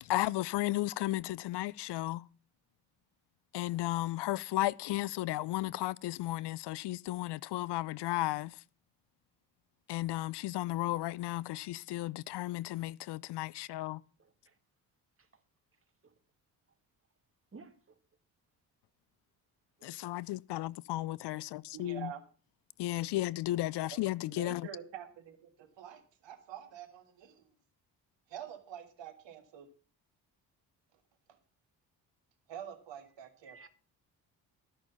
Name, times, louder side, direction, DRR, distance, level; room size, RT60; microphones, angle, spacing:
voice 1, 0.0-2.2 3.5-8.6 9.9-14.0 19.8-22.1 22.8-24.7, left 16 dB, 60° left, 0.5 m, -34 dB
voice 2, 14.2-14.6 15.2-15.4 16.0-16.1 17.5-18.0 19.8-20.0 33.5-33.7, right 4 dB, 30° right, 2.0 m, -55 dB
voice 3, 21.7-22.2 23.9-27.4 28.3-29.7 32.5-33.7, right 9 dB, 65° right, 2.0 m, -47 dB
13.0 x 6.1 x 7.0 m
hypercardioid pair, 50°, 47 cm